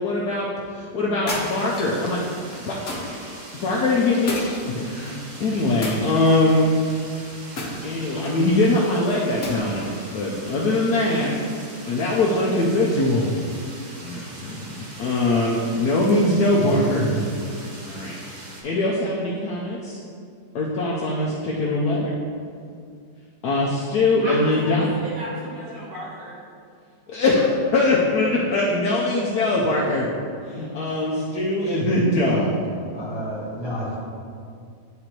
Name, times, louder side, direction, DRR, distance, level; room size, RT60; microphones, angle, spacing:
voice 1, 0.0-2.2 2.7-3.2 3.6-6.7 7.8-11.4 11.9-13.3 14.0-17.1 17.9-18.1 18.6-20.0 20.5-22.1 23.4-25.0 27.1-27.4 27.7-30.1 30.4-32.6, left 2 dB, 70° left, -4 dB, 1.2 m, -22 dB
sound 1, 1.3-2.0 2.9-3.3 4.3-5.1 5.8-6.6 7.6-8.4 9.4-10.0, left 1 dB, 45° left, 1.2 m, -32 dB
sound 2, 1.3-18.6, right 1 dB, 40° right, 0.7 m, -41 dB
voice 2, 24.2-26.4, equal, 60° right, -7 dB, 1.9 m, -34 dB
voice 3, 32.9-34.0, equal, 15° left, -7 dB, 1.5 m, -30 dB
10.0 x 3.9 x 2.9 m, 2.3 s
omnidirectional pair, 1.9 m